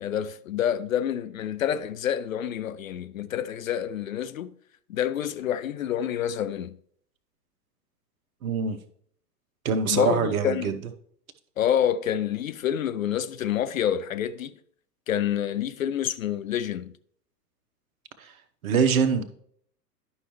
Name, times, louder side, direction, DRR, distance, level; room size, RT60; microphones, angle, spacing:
voice 1, 0.0-4.5 4.9-6.8 9.9-10.8 11.6-14.5 15.1-16.9, left 10 dB, 55° left, 0.5 m, -27 dB
voice 2, 8.4-8.8 9.6-10.8 18.2-18.3 18.6-19.2, right 6 dB, 55° right, 1.0 m, -24 dB
11.0 x 5.6 x 3.0 m
figure-of-eight pair, 100°, 49 cm